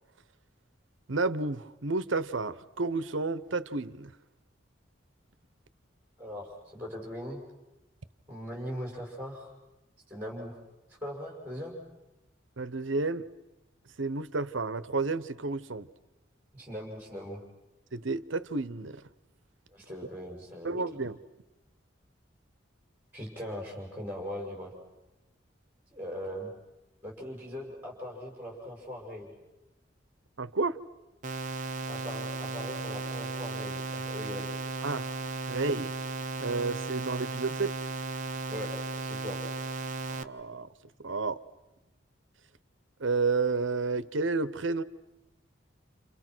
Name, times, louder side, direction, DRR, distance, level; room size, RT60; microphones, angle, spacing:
voice 1, 1.1-4.1 12.6-13.3 14.0-15.9 17.9-19.0 20.6-21.2 30.4-30.8 34.8-35.1 35.5-35.9 36.4-37.8 40.1-40.7 41.0-41.4 43.0-44.8, right 3 dB, 80° right, 1.0 m, -31 dB
voice 2, 6.2-7.4 8.3-9.5 10.1-10.6 11.0-11.7 16.5-17.4 19.7-20.7 23.1-24.7 25.9-26.5 27.0-29.3 31.9-34.5 38.5-38.7 39.0-39.4, equal, 10° right, 6.1 m, -40 dB
sound 1, 31.2-40.2, right 3 dB, 40° right, 0.9 m, -35 dB
29.5 x 29.5 x 6.2 m
head